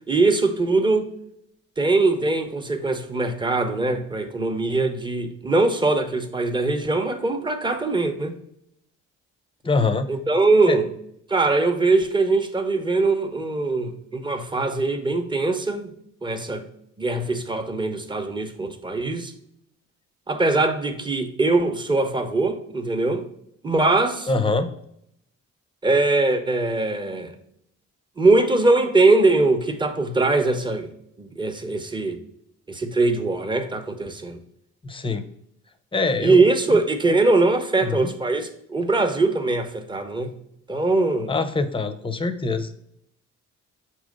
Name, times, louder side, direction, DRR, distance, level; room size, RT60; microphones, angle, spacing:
voice 1, 0.1-1.1 1.8-8.4 10.1-10.9 11.3-15.9 16.2-16.6 17.0-19.3 20.3-23.2 23.6-24.3 25.8-27.3 28.2-30.9 31.2-32.2 32.7-34.4 36.2-40.3 40.7-41.3, right 3 dB, 15° right, 0.8 m, -21 dB
voice 2, 9.6-10.1 10.7-10.8 24.3-24.7 34.8-35.2 35.9-36.4 37.8-38.1 41.3-42.7, left 3 dB, 15° left, 0.7 m, -24 dB
6.2 x 3.0 x 5.2 m
cardioid pair, 90°, 30 cm